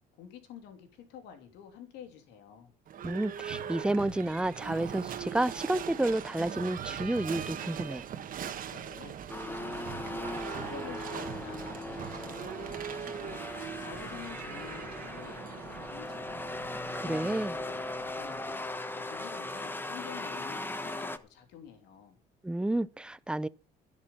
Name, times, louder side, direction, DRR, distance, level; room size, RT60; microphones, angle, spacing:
voice 1, 0.2-2.7 8.7-16.5 17.0-22.2, left 8 dB, 85° left, 3.0 m, -49 dB
Livestock farm animals working animals / Bell, 2.9-18.7, right 9 dB, 55° right, 1.6 m, -41 dB
voice 2, 3.0-8.0 16.9-17.5 22.4-23.5, right 1 dB, 5° right, 0.6 m, -30 dB
sound 1, 9.3-21.2, left 2 dB, 10° left, 1.1 m, -39 dB
12.5 x 11.0 x 5.8 m
cardioid pair, 110°, 17 cm